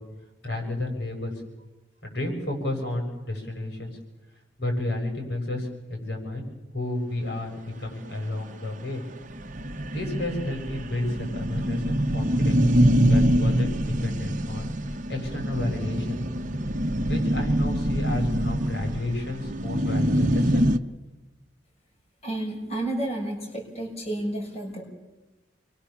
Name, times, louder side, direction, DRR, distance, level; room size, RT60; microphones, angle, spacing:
voice 1, 0.4-1.3 2.0-3.9 4.6-6.5 6.7-9.0 9.9-12.6 13.0-14.7 15.1-16.2 17.1-20.7, left 1 dB, 65° left, 2 dB, 7.3 m, -31 dB
sound 1, 8.1-8.2 8.5-8.6 8.9-9.0 9.2-20.8, equal, 45° right, 0.9 m, -24 dB
voice 2, 22.2-24.8, right 1 dB, 35° left, 0 dB, 6.3 m, -31 dB
29.0 x 23.0 x 7.3 m, 1.1 s
head